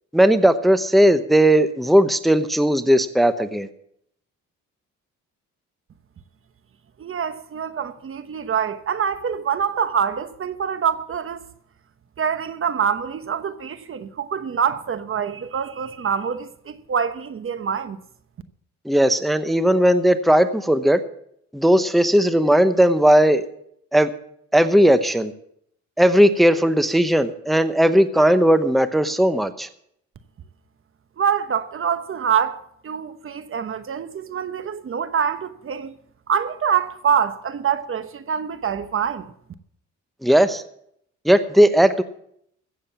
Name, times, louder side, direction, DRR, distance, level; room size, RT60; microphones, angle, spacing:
voice 1, 0.1-3.7 18.8-21.0 21.5-23.4 23.9-24.1 24.5-25.3 26.0-29.7 40.2-40.6 41.2-42.0, equal, ahead, 0.9 m, -17 dB
voice 2, 7.0-11.5 12.2-18.0 31.2-35.9 36.3-39.3, right 7 dB, 45° right, 1.0 m, -25 dB
15.5 x 7.6 x 7.2 m
cardioid pair, 90°, 30 cm